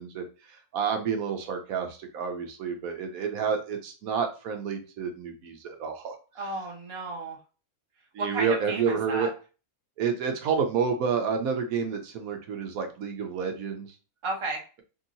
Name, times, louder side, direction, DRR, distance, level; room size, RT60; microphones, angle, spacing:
voice 1, 0.0-6.5 8.1-9.3 10.0-14.0, right 6 dB, 80° right, 4 dB, 1.1 m, -29 dB
voice 2, 6.4-7.4 8.2-9.3 14.2-14.6, right 2 dB, 30° right, 1 dB, 0.6 m, -33 dB
3.0 x 2.8 x 2.5 m, 0.35 s
omnidirectional pair, 1.5 m